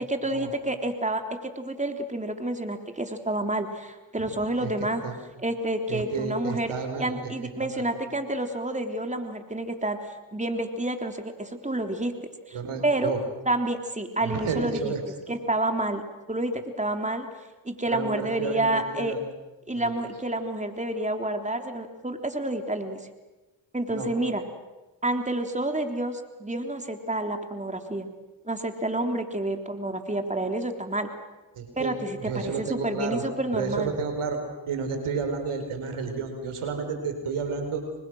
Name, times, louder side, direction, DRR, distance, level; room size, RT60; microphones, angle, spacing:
voice 1, 0.1-5.0 5.4-6.7 7.0-12.1 12.5-13.1 13.4-14.9 15.3-16.0 16.3-17.3 17.6-19.1 19.7-23.0 23.7-24.4 25.0-28.1 28.4-31.1 31.8-33.9, right 1 dB, 15° right, 6 dB, 3.6 m, -29 dB
voice 2, 5.9-7.1 7.6-7.8 12.5-13.2 14.2-15.0 17.9-19.2 19.7-19.9 23.9-24.1 31.5-32.0 32.2-33.2 33.5-34.4 34.7-37.8, right 5 dB, 85° right, 6 dB, 4.9 m, -31 dB
30.0 x 25.0 x 6.4 m, 1.1 s
supercardioid pair, 45°, 49 cm